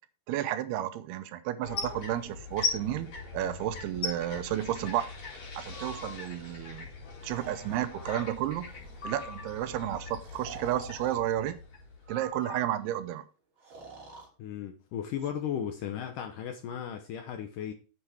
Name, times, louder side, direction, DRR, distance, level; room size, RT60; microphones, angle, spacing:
voice 1, 0.3-3.1 3.3-5.1 5.6-6.9 7.2-8.7 9.0-11.6 12.1-13.3, right 12 dB, 80° right, 2.7 m, -32 dB
sound 1, 1.6-12.4, left 4 dB, 45° left, 3.4 m, -40 dB
Breathing, 5.7-6.2 7.2-8.1 8.6-9.0 10.2-11.2 12.0-12.9 13.6-14.3, right 2 dB, 35° right, 2.7 m, -47 dB
sound 2, 9.0-10.3, left 3 dB, 20° left, 2.0 m, -46 dB
voice 2, 14.4-17.7, left 9 dB, 75° left, 2.0 m, -36 dB
8.7 x 7.8 x 3.4 m
omnidirectional pair, 4.6 m